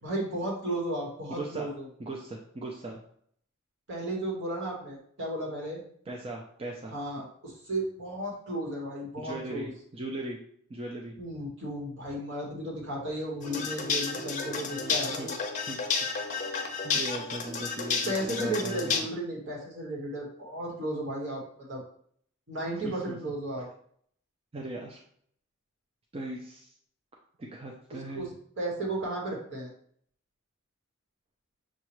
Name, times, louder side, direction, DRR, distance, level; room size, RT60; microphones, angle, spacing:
voice 1, 0.0-1.9 3.9-5.8 6.9-9.7 11.2-15.4 18.0-21.8 22.5-23.7 28.1-28.3 28.6-29.7, right 1 dB, 60° right, -2 dB, 1.4 m, -34 dB
voice 2, 1.4-1.7 2.0-3.0 6.1-6.9 9.2-10.4 10.7-11.1 13.6-13.7 14.8-15.3 15.7-15.8 16.8-18.8 23.1-23.2 24.5-25.0 26.1-26.7 27.4-28.3, right 2 dB, 25° right, -1 dB, 0.5 m, -38 dB
sound 1, 13.4-19.0, left 5 dB, 35° left, 0.6 m, -31 dB
6.3 x 2.4 x 3.0 m, 0.63 s
head